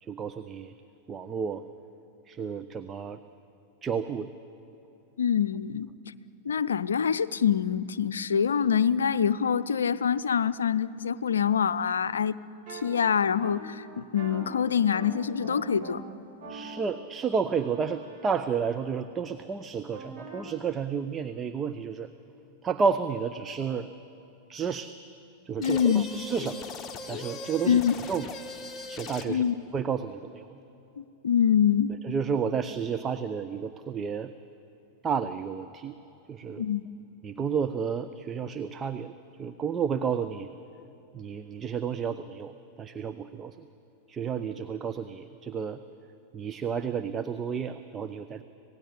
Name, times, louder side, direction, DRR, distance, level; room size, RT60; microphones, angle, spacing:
voice 1, 0.0-0.7 1.1-1.6 2.3-3.2 3.8-4.3 16.5-22.1 22.6-23.9 24.5-24.9 25.4-26.6 27.1-27.8 28.1-28.3 28.9-29.4 29.7-30.6 32.0-34.3 35.0-36.0 36.3-36.6 37.2-39.1 39.4-40.5 41.1-43.7 44.1-45.8 46.3-48.4, right 6 dB, 20° right, 9 dB, 0.8 m, -31 dB
voice 2, 5.2-5.9 6.5-12.4 12.7-16.0 25.6-26.1 27.7-28.0 29.3-29.6 31.0-31.9 36.6-36.9, left 8 dB, 70° left, 15 dB, 0.6 m, -25 dB
sound 1, 12.7-12.8 13.4-13.6 14.2-14.4 14.9-15.1 15.4-15.9 16.4-18.7 19.9-20.4, right 4 dB, 40° right, 5.7 m, -44 dB
sound 2, 25.6-29.5, left 3 dB, 20° left, 1.3 m, -40 dB
26.0 x 18.0 x 10.0 m, 2.9 s
figure-of-eight pair, 90°, 0 cm